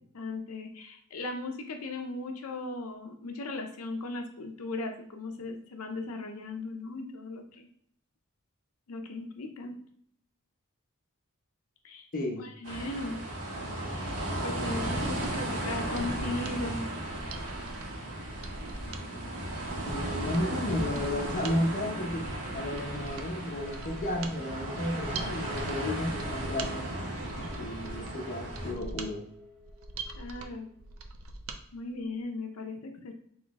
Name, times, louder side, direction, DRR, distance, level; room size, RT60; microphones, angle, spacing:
voice 1, 0.1-7.7 8.9-9.8 11.8-12.1 12.4-13.2 13.8-16.9 30.2-30.7 31.7-33.1, left 2 dB, 85° left, 4 dB, 0.6 m, -37 dB
voice 2, 12.1-12.5 19.8-26.9 27.4-29.3, left 1 dB, 40° left, 1 dB, 0.7 m, -33 dB
sound 1, 12.6-28.7, right 1 dB, 85° right, 1.3 m, -35 dB
Mechanisms, 14.7-31.6 31.9-32.0, right 3 dB, 70° right, 0.5 m, -43 dB
sound 2, 23.3-31.0, left 3 dB, ahead, 1.4 m, -53 dB
3.9 x 3.1 x 3.5 m, 0.67 s
head